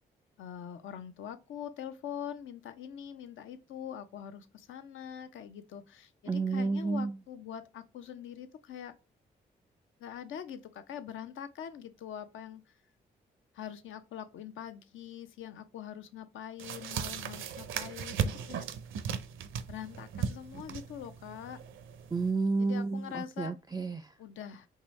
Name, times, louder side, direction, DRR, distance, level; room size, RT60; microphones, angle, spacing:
voice 1, 0.4-8.9 10.0-12.7 13.5-18.7 19.7-21.6 22.6-23.5 24.2-24.7, left 9 dB, 70° left, 0.6 m, -43 dB
voice 2, 6.3-7.1 22.1-24.1, right 3 dB, 20° right, 0.4 m, -31 dB
sound 1, 16.6-22.3, right 7 dB, 70° right, 0.5 m, -37 dB
4.8 x 2.7 x 3.1 m
hypercardioid pair, 40°, 21 cm